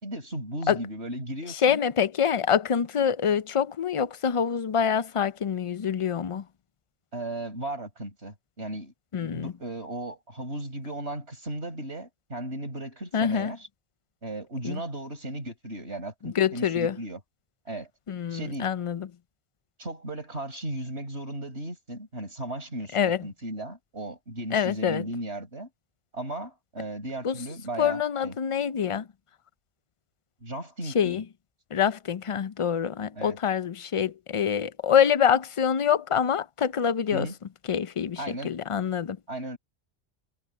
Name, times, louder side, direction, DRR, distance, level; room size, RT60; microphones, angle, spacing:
voice 1, 0.0-1.8 7.1-8.9 9.2-13.6 14.2-17.2 17.7-17.9 18.3-18.7 19.8-25.7 26.1-28.3 30.4-31.2 33.2-33.4 37.1-37.4 38.2-38.5 39.3-39.6, right 1 dB, 65° right, 5.4 m, -36 dB
voice 2, 1.5-6.4 9.1-9.5 13.1-13.5 14.6-14.8 16.2-17.0 18.1-19.1 22.9-23.3 24.5-25.0 27.2-27.4 27.8-29.1 30.9-31.2 31.7-37.3 37.7-39.2, left 8 dB, 50° left, 0.4 m, -25 dB
omnidirectional pair, 1.2 m